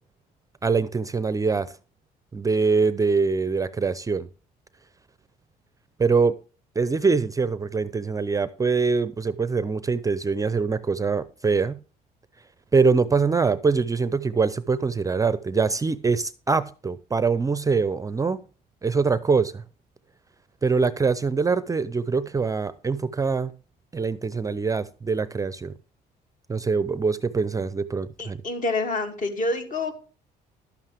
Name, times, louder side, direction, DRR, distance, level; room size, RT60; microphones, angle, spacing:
voice 1, 0.6-1.7 2.3-4.3 6.0-6.4 6.8-11.8 12.7-18.4 18.8-19.6 20.6-23.5 23.9-25.8 26.5-28.4, right 4 dB, 20° right, 0.5 m, -23 dB
voice 2, 28.2-29.9, left 2 dB, 50° left, 2.5 m, -27 dB
11.5 x 9.0 x 3.4 m
cardioid pair, 110°, 17 cm